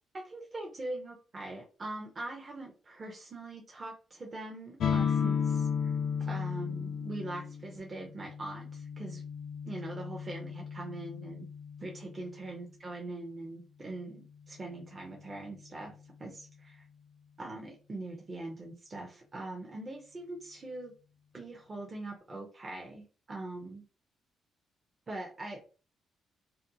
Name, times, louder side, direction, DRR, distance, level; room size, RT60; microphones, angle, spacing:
voice 1, 0.1-9.2 9.6-11.4 11.8-15.9 16.2-16.8 17.4-20.9 21.3-23.8 25.1-25.6, right 2 dB, 35° right, -1 dB, 0.6 m, -42 dB
sound 1, 4.8-12.4, left 7 dB, 65° left, 0.4 m, -34 dB
2.5 x 2.1 x 2.7 m, 0.35 s
cardioid pair, 90°, 0 cm